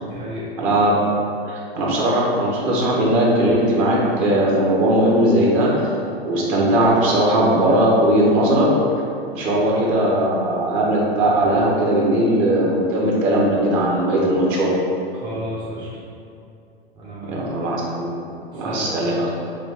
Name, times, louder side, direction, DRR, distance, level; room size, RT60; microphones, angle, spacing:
voice 1, 0.0-0.5 15.1-15.9 16.9-17.4 18.5-19.0, equal, 15° right, -8 dB, 0.6 m, -32 dB
voice 2, 0.6-0.9 1.5-5.7 6.2-8.7 9.3-14.7 17.2-18.2 18.5-19.3, right 1 dB, 40° right, -4 dB, 1.1 m, -18 dB
5.0 x 2.5 x 3.5 m, 2.6 s
hypercardioid pair, 110°, 31 cm